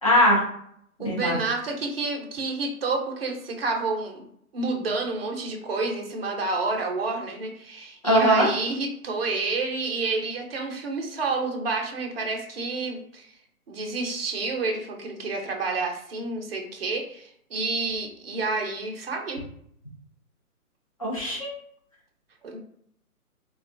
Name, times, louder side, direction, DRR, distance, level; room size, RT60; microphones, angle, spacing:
voice 1, 0.0-0.4 1.0-1.4 8.0-8.5 21.0-21.5, equal, 25° left, -4 dB, 0.5 m, -20 dB
voice 2, 1.0-4.2 4.5-13.3 13.7-19.4 22.4-22.6, right 3 dB, 40° right, 1 dB, 0.6 m, -29 dB
3.5 x 2.2 x 2.5 m, 0.69 s
figure-of-eight pair, 150°, 45 cm